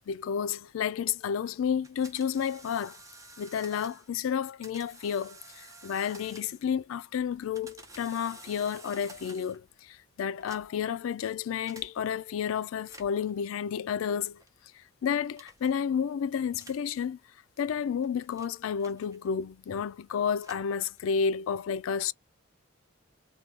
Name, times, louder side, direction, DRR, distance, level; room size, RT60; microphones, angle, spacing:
voice 1, 0.1-3.0 3.4-14.4 14.7-17.2 17.6-22.1, left 7 dB, 85° left, 0.3 m, -31 dB
sound 1, 1.8-4.1 4.6-6.7 7.3-9.7 10.3-10.9 11.7-11.9 12.8-13.3 14.2-14.5 15.3-15.7 16.5-16.9 17.7-19.4 20.2-21.2, right 2 dB, 15° right, 0.6 m, -52 dB
2.8 x 2.2 x 3.2 m
head